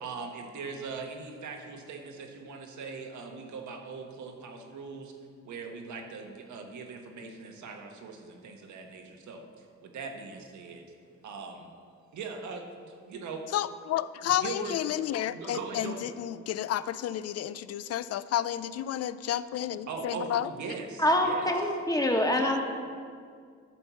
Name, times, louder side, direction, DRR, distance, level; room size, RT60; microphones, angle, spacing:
voice 1, 0.0-5.1 5.4-9.4 9.8-10.8 11.2-11.7 12.1-13.5 14.4-14.8 15.3-16.1 19.9-21.5, right 4 dB, 70° right, 3 dB, 1.4 m, -40 dB
voice 2, 13.5-20.5, left 11 dB, 55° left, 15 dB, 0.5 m, -31 dB
voice 3, 21.0-22.6, left 1 dB, 10° left, 2 dB, 1.4 m, -25 dB
13.0 x 4.5 x 6.9 m, 2.1 s
cardioid pair, 90°, 30 cm